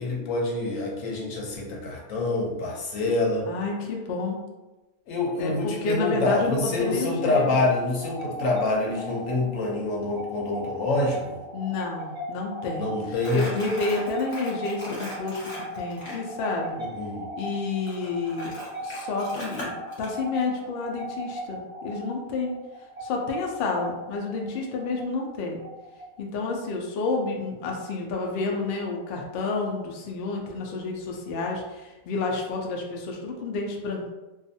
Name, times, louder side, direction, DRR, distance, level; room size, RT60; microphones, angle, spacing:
voice 1, 0.0-3.5 5.1-11.4 12.8-13.5 16.9-17.2, left 2 dB, 65° left, -2 dB, 0.9 m, -26 dB
voice 2, 3.5-4.4 5.4-7.5 11.5-12.9 13.3-16.8 17.4-18.5 18.8-22.6 23.0-25.6 26.2-34.1, left 3 dB, 90° left, 0 dB, 0.5 m, -30 dB
sound 1, 7.0-26.4, equal, 10° right, 1.0 m, -38 dB
Crumpling crinkling, 13.1-16.2 17.9-20.1, left 1 dB, 25° left, 0.8 m, -38 dB
2.5 x 2.3 x 2.6 m, 1.1 s
omnidirectional pair, 1.6 m